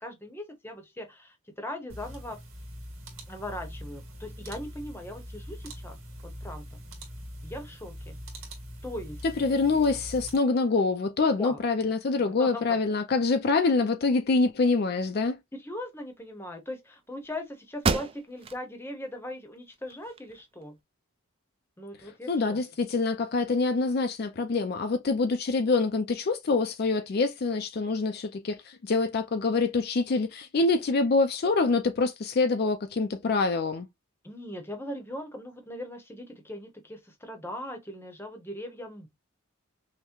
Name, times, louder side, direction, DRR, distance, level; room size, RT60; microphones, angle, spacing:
voice 1, 0.0-2.4 3.3-6.8 7.4-8.2 8.8-9.2 11.4-11.6 12.1-12.8 15.5-20.8 21.8-22.6 34.2-39.1, left 1 dB, 10° left, 0.7 m, -40 dB
sound 1, 1.9-10.4, equal, 75° right, 2.0 m, -43 dB
voice 2, 9.4-15.4 22.3-33.9, left 3 dB, 45° left, 0.4 m, -25 dB
sound 2, 17.2-17.3 17.8-18.6 19.1-19.2 19.7-20.6, right 4 dB, 25° right, 0.3 m, -30 dB
5.5 x 2.1 x 2.9 m
head